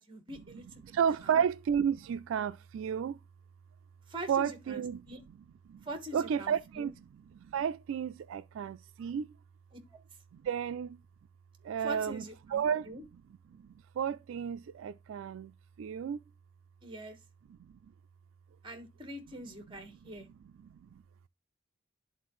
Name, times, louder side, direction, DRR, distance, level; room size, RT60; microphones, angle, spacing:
voice 1, 0.0-0.8 1.2-1.4 4.1-5.2 5.8-6.9 9.7-10.0 11.8-13.0 16.8-17.2 18.6-20.3, right 1 dB, 25° right, 1.2 m, -44 dB
voice 2, 0.8-3.2 4.3-5.0 5.7-5.8 6.1-6.9 7.4-9.3 10.4-11.0 11.6-12.9 13.6-13.7 14.0-15.5 15.8-16.2 20.8-21.0, right 8 dB, 80° right, 0.3 m, -32 dB
11.5 x 3.8 x 3.1 m
head